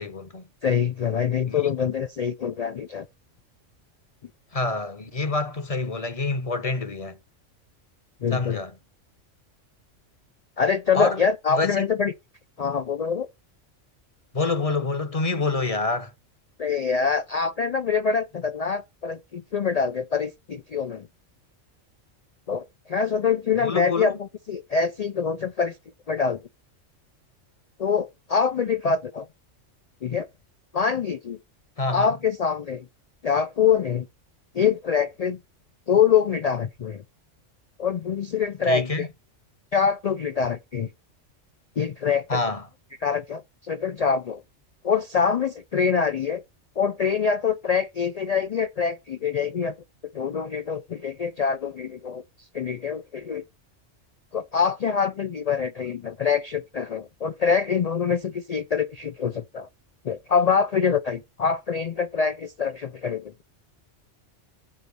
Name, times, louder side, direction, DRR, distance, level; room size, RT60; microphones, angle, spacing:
voice 1, 0.0-0.4 1.5-1.6 4.5-7.2 8.3-8.7 10.9-11.2 11.5-11.9 14.3-16.1 23.6-24.2 31.8-32.1 38.7-39.1 42.3-42.6, left 3 dB, 35° left, 0.8 m, -27 dB
voice 2, 0.6-3.1 8.2-8.6 10.6-12.1 12.6-13.3 16.6-21.1 22.5-25.8 26.1-26.4 27.8-29.3 30.0-30.3 30.7-31.4 31.9-32.9 33.2-34.1 34.5-35.4 35.9-37.0 37.8-39.1 39.7-40.9 41.8-42.4 43.0-44.4 44.8-46.4 46.8-49.7 50.1-52.2 52.5-53.4 54.3-59.7 60.0-63.3, left 6 dB, 80° left, 0.3 m, -25 dB
7.6 x 4.0 x 6.6 m
omnidirectional pair, 1.3 m